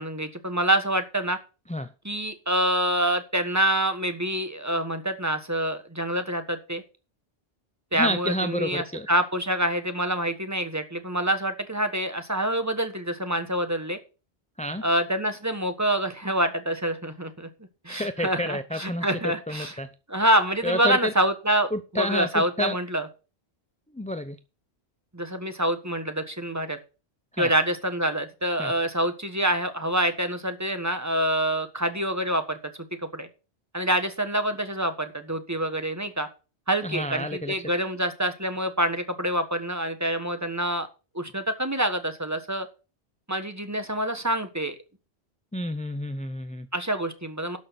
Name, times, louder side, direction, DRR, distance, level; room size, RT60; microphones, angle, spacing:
voice 1, 0.0-1.4 2.0-6.8 7.9-14.0 14.8-17.5 17.8-19.7 20.1-23.1 25.1-26.8 27.4-32.6 33.1-33.3 33.7-36.3 36.7-40.9 41.1-42.7 43.3-44.7 46.7-47.6, right 1 dB, 15° right, 1.4 m, -26 dB
voice 2, 7.9-9.1 14.6-14.9 17.9-19.1 19.5-19.9 20.6-21.1 21.7-22.8 23.9-24.4 27.3-27.5 28.6-28.7 36.8-37.5 45.5-46.7, equal, 10° left, 0.4 m, -29 dB
12.0 x 6.4 x 5.9 m
omnidirectional pair, 1.1 m